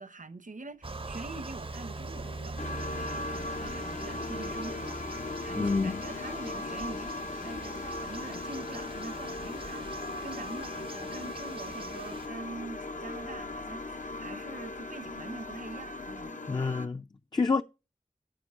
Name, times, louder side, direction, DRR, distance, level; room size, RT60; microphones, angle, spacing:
voice 1, 0.0-16.5, right 3 dB, 70° right, 1.0 m, -44 dB
sound 1, 0.8-12.3, right 3 dB, 40° right, 0.6 m, -43 dB
sound 2, 1.0-16.3, left 3 dB, 85° left, 1.5 m, -48 dB
sound 3, 2.6-16.9, left 2 dB, 65° left, 0.8 m, -38 dB
voice 2, 5.6-6.0 16.5-17.0 17.3-17.6, left 4 dB, 30° left, 0.5 m, -27 dB
10.0 x 8.0 x 4.8 m
wide cardioid pair, 40°, 14 cm